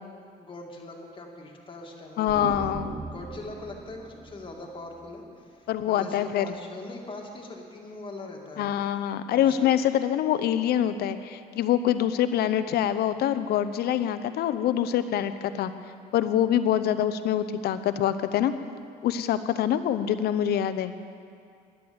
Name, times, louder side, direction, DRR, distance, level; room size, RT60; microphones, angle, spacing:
voice 1, 0.4-2.6 3.0-8.9 9.3-9.7, left 2 dB, 30° left, 0 dB, 2.2 m, -42 dB
voice 2, 2.2-3.0 5.7-6.5 8.6-15.7 16.1-18.5 19.0-20.9, left 10 dB, 70° left, 11 dB, 0.7 m, -25 dB
sound 1, 2.3-5.9, right 3 dB, 15° right, 0.5 m, -40 dB
11.0 x 10.5 x 7.9 m, 2.3 s
cardioid pair, 110°, 17 cm